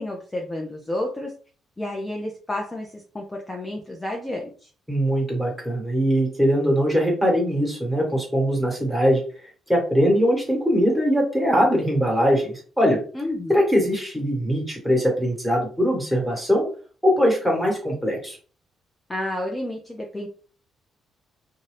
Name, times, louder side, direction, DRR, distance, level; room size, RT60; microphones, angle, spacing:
voice 1, 0.0-1.3 1.8-4.7 13.1-13.6 19.1-20.3, left 1 dB, 15° left, 0 dB, 0.6 m, -30 dB
voice 2, 4.9-9.2 9.7-13.0 13.5-16.7 17.0-18.4, equal, 5° right, -1 dB, 1.4 m, -21 dB
2.7 x 2.2 x 3.3 m, 0.40 s
cardioid pair, 90°, 0 cm